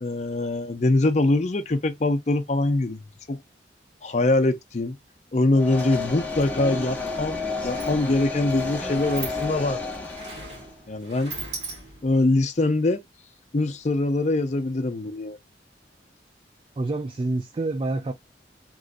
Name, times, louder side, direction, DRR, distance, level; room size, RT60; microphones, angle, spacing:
voice 1, 0.0-3.4 4.0-5.0 5.3-9.8 10.9-11.3 12.0-13.0 13.5-15.4, left 2 dB, 40° left, 0.5 m, -23 dB
sound 1, 5.5-10.7, left 3 dB, 10° left, 0.7 m, -31 dB
Sliding door, 7.5-12.2, right 3 dB, 75° right, 1.7 m, -39 dB
voice 2, 16.8-18.1, right 2 dB, 30° right, 0.3 m, -27 dB
3.0 x 2.5 x 2.5 m
head